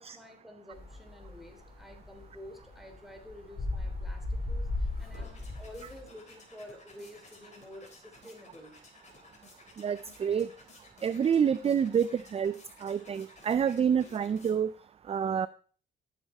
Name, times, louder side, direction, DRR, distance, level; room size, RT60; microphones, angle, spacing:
voice 1, 0.0-8.8, left 1 dB, ahead, 4 dB, 3.0 m, -50 dB
sound 1, 0.7-6.0, left 2 dB, 50° left, 3.6 m, -36 dB
sound 2, 4.8-14.9, left 3 dB, 35° left, 3.4 m, -56 dB
voice 2, 9.8-10.5 11.0-12.5 12.8-14.7 15.1-15.5, right 7 dB, 30° right, 16 dB, 0.4 m, -27 dB
12.5 x 7.4 x 4.2 m, 0.43 s
cardioid pair, 90°, 20 cm